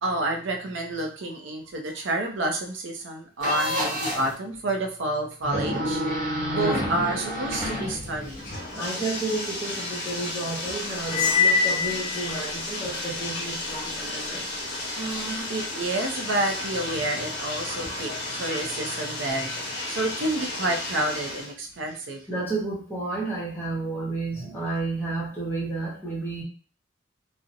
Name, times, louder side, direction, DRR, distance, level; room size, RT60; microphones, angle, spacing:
voice 1, 0.0-6.0 6.5-8.5 15.0-22.2 24.4-24.6, right 2 dB, 65° right, 3 dB, 0.5 m, -29 dB
sound 1, 3.4-4.3 5.4-8.5, equal, 35° right, 0.9 m, -29 dB
Bathtub (filling or washing), 7.5-21.5, left 2 dB, 50° left, 1.0 m, -33 dB
voice 2, 8.7-14.4 22.3-26.4, right 2 dB, 10° left, -5 dB, 0.6 m, -31 dB
Cymbal, 11.1-12.5, left 5 dB, 85° left, 0.6 m, -23 dB
2.6 x 2.0 x 2.6 m, 0.39 s
head